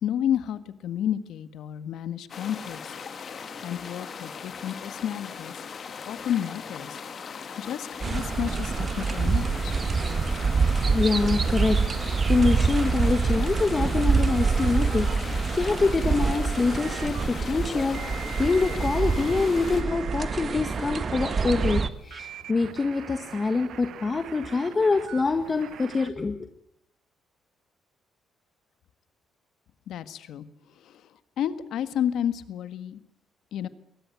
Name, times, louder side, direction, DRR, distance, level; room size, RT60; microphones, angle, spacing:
voice 1, 0.0-2.9 3.6-5.5 6.0-7.0 7.6-9.7 29.9-30.4 30.8-31.0 31.4-33.0 33.5-33.7, left 10 dB, 80° left, 13 dB, 1.6 m, -31 dB
sound 1, 2.3-19.8, left 6 dB, 50° left, 2.7 m, -39 dB
sound 2, 8.0-21.9, right 4 dB, 40° right, 1.5 m, -26 dB
voice 2, 10.9-26.5, left 4 dB, 30° left, 7 dB, 1.7 m, -25 dB
sound 3, 14.3-15.2 15.9-17.2 17.9-21.8 22.1-26.1, right 11 dB, 70° right, 1.0 m, -43 dB
22.5 x 19.0 x 8.3 m, 0.75 s
cardioid pair, 90°, 0 cm